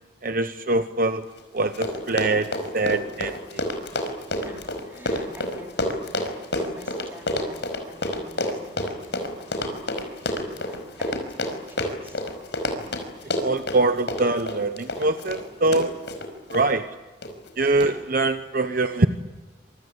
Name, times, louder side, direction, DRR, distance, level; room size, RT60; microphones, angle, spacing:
voice 1, 0.2-1.3 1.5-2.5 2.7-3.6 12.7-12.9 13.4-15.9 16.5-16.9 17.6-19.1, right 2 dB, 45° right, 9 dB, 1.0 m, -23 dB
Run, 1.4-1.5 1.7-16.7 17.2-17.5 17.8-17.9, left 1 dB, 65° left, 5.0 m, -29 dB
voice 2, 4.3-11.2 11.5-12.2, right 1 dB, 10° right, 0 dB, 4.4 m, -48 dB
27.0 x 24.5 x 8.1 m, 1.2 s
head